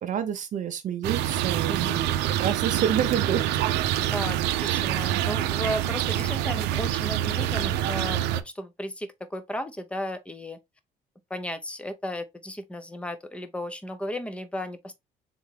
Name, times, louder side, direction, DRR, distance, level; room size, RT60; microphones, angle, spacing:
voice 1, 0.0-3.5, right 9 dB, 50° right, 0.6 m, -28 dB
sound 1, 1.0-8.4, right 12 dB, 90° right, 0.5 m, -26 dB
voice 2, 1.7-2.0 4.0-10.6 11.3-15.0, equal, 5° left, 0.7 m, -35 dB
3.7 x 3.5 x 3.3 m
cardioid pair, 110°, 17 cm